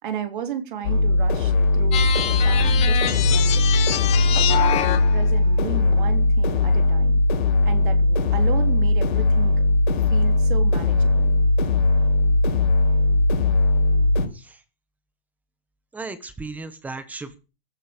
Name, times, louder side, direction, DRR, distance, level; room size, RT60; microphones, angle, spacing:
voice 1, 0.0-3.9 4.3-7.2 7.6-9.6 10.0-11.3, right 9 dB, 55° right, 3.3 m, -34 dB
sound 1, 0.8-14.3, left 2 dB, 55° left, 4.7 m, -19 dB
sound 2, 1.9-5.2, left 10 dB, 20° left, 2.6 m, -25 dB
voice 2, 15.9-17.4, right 3 dB, 5° right, 1.3 m, -36 dB
15.0 x 12.0 x 5.2 m
hypercardioid pair, 165°, 30 cm